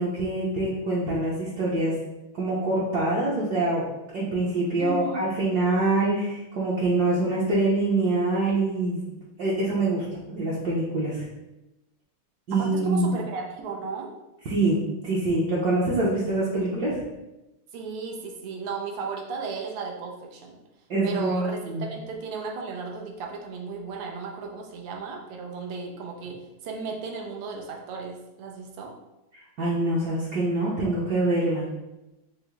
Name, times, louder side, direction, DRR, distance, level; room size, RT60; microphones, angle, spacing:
voice 1, 0.0-1.9 2.3-3.8 4.1-9.0 9.4-11.3 12.5-13.1 14.4-17.0 20.9-21.8 29.6-31.7, right 2 dB, 60° right, -7 dB, 1.1 m, -25 dB
voice 2, 4.8-5.3 12.5-14.1 17.7-20.6 21.0-28.9, right 4 dB, 90° right, 1 dB, 1.6 m, -35 dB
5.7 x 2.0 x 3.1 m, 0.97 s
omnidirectional pair, 2.4 m